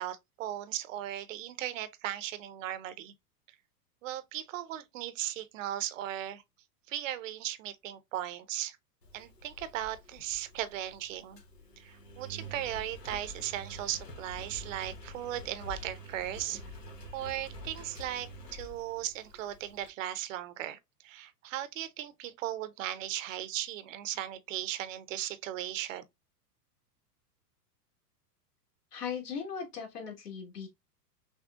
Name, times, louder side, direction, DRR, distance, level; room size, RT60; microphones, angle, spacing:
voice 1, 0.0-3.1 4.0-6.4 6.9-8.8 9.1-11.4 11.8-16.6 17.1-26.0, right 13 dB, 55° right, 0.7 m, -37 dB
Engine, 9.0-19.9, equal, 85° left, 1.4 m, -47 dB
voice 2, 28.9-30.7, left 7 dB, 70° left, 1.9 m, -38 dB
6.1 x 2.3 x 2.4 m
hypercardioid pair, 105°, 48 cm